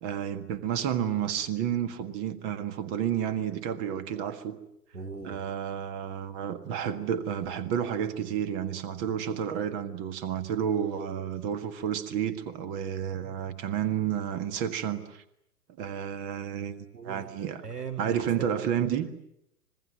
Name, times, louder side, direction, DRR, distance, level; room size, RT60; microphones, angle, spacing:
voice 1, 0.0-4.6 5.2-15.2 15.8-17.7 18.0-19.1, right 9 dB, 25° right, 1.6 m, -31 dB
voice 2, 4.9-5.4 16.9-17.2 17.6-18.2 18.8-18.9, right 6 dB, 80° right, 3.4 m, -38 dB
25.5 x 21.0 x 9.4 m
figure-of-eight pair, 120°, 47 cm